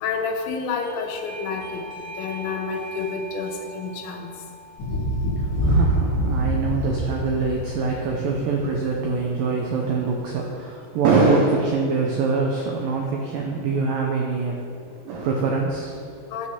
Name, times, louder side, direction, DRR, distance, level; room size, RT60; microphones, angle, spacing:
voice 1, 0.0-1.9 2.2-4.3 16.3-16.5, left 5 dB, 85° left, 4 dB, 3.2 m, -29 dB
Doorbell, 0.8-7.3, right 1 dB, 25° left, 1.2 m, -41 dB
Thunder, 4.8-8.7 10.0-10.1, right 1 dB, 65° left, 1.3 m, -24 dB
voice 2, 5.4-16.1, right 4 dB, 85° right, 0 dB, 2.0 m, -24 dB
10.5 x 5.0 x 6.9 m, 2.3 s
omnidirectional pair, 5.1 m